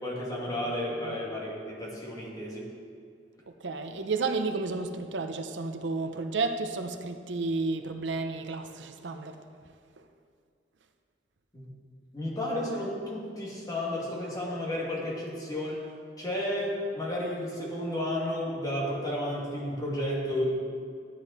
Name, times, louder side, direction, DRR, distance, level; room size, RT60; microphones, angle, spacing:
voice 1, 0.0-2.7 11.5-11.6 12.1-15.8 16.2-20.6, left 1 dB, 20° left, -4 dB, 2.4 m, -32 dB
voice 2, 3.5-9.4 10.0-10.1, right 3 dB, 85° right, 7 dB, 0.7 m, -32 dB
12.5 x 10.0 x 4.3 m, 2.2 s
head